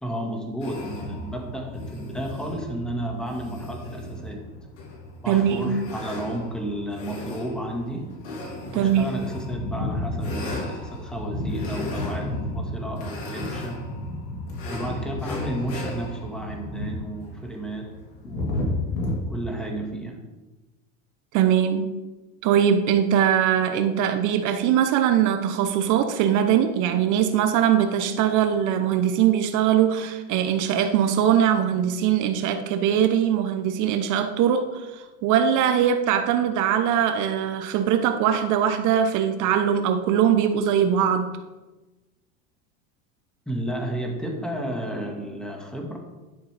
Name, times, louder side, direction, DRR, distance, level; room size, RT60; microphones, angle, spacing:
voice 1, 0.0-4.5 5.2-8.2 8.7-13.9 14.6-17.9 18.2-18.8 19.3-20.2 43.5-46.0, right 1 dB, ahead, 1 dB, 1.7 m, -32 dB
sound 1, 0.6-19.2, left 2 dB, 65° left, 3.2 m, -33 dB
voice 2, 5.3-5.7 8.7-9.1 21.3-21.9 22.4-41.3, right 9 dB, 50° right, 8 dB, 0.8 m, -21 dB
11.5 x 6.7 x 3.4 m, 1.1 s
supercardioid pair, 110°, 40 cm